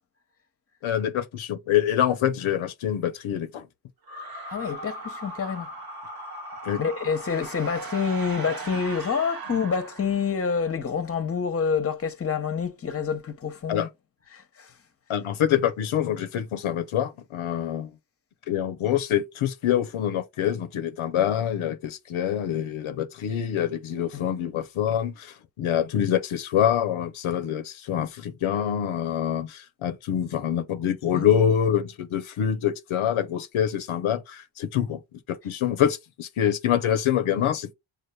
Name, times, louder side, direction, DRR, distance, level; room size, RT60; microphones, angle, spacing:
voice 1, 0.8-3.7 6.6-6.8 13.7-13.9 15.1-17.9 18.5-35.0 35.3-37.7, left 10 dB, 85° left, 0.7 m, -25 dB
sound 1, 4.0-10.5, right 2 dB, 50° right, 0.9 m, -38 dB
voice 2, 4.5-5.7 6.8-13.9 14.3-14.7 24.1-24.2 31.1-31.3, left 6 dB, 30° left, 0.8 m, -27 dB
6.4 x 2.5 x 2.2 m
cardioid pair, 80°, 47 cm